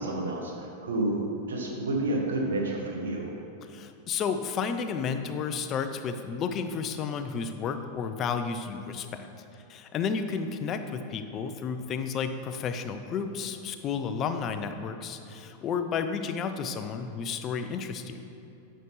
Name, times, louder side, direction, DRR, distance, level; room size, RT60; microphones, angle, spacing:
voice 1, 0.0-3.3, right 2 dB, 65° right, 1 dB, 1.3 m, -30 dB
voice 2, 3.7-9.2 9.7-18.2, left 6 dB, 30° left, 8 dB, 0.5 m, -32 dB
11.0 x 6.7 x 3.2 m, 3.0 s
figure-of-eight pair, 90°, 0 cm